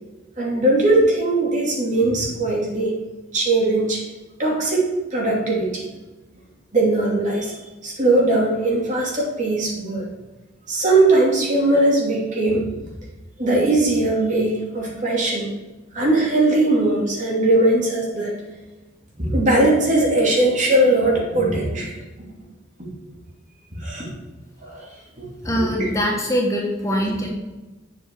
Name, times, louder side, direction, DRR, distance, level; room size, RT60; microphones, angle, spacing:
voice 1, 0.4-3.0 3.3-4.0 4.4-5.9 6.7-7.5 7.8-10.0 10.7-12.7 13.4-15.5 15.9-18.4 19.2-21.9 22.8-22.9 23.7-24.1 24.6-24.9 25.2-25.9, right 2 dB, 40° right, -3 dB, 2.8 m, -20 dB
voice 2, 25.4-27.3, equal, 15° left, -1 dB, 1.3 m, -22 dB
8.5 x 7.1 x 4.7 m, 1.1 s
head